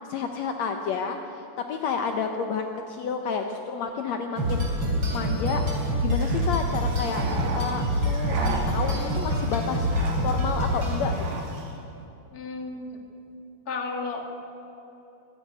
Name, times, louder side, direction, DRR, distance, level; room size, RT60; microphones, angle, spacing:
voice 1, 0.1-4.6 5.1-5.6 6.0-7.2 7.6-8.4 8.7-9.9 10.2-11.2, left 6 dB, 70° left, 5 dB, 2.0 m, -30 dB
sound 1, 4.4-11.5, equal, 40° right, 4.1 m, -26 dB
sound 2, 6.2-11.7, right 3 dB, 60° right, 3.5 m, -36 dB
voice 2, 12.3-13.0 13.7-14.3, left 3 dB, 35° left, 3 dB, 2.2 m, -33 dB
24.5 x 11.0 x 9.5 m, 2.9 s
omnidirectional pair, 3.6 m